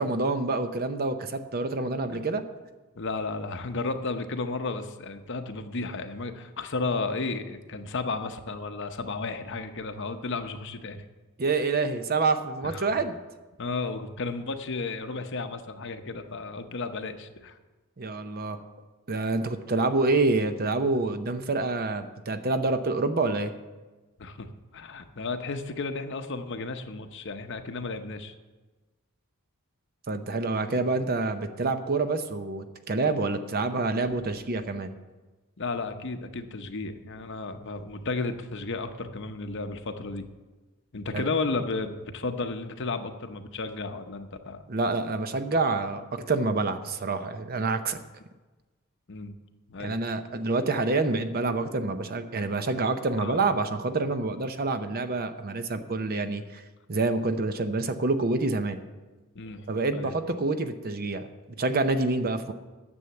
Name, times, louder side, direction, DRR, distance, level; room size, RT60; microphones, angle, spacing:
voice 1, 0.0-2.4 11.4-13.1 18.0-18.6 19.1-23.5 30.1-34.9 41.1-41.3 44.7-48.0 49.8-56.6 56.9-58.8 59.7-61.3 61.6-62.5, right 3 dB, 45° right, 9 dB, 0.7 m, -27 dB
voice 2, 3.0-11.0 12.6-12.9 13.6-17.6 24.2-24.5 24.7-28.3 35.6-40.3 40.9-44.6 49.1-49.3 49.7-50.0 53.2-53.4 59.3-59.7 59.9-60.1, left 3 dB, 55° left, 8 dB, 0.8 m, -33 dB
9.9 x 7.1 x 7.7 m, 1.2 s
head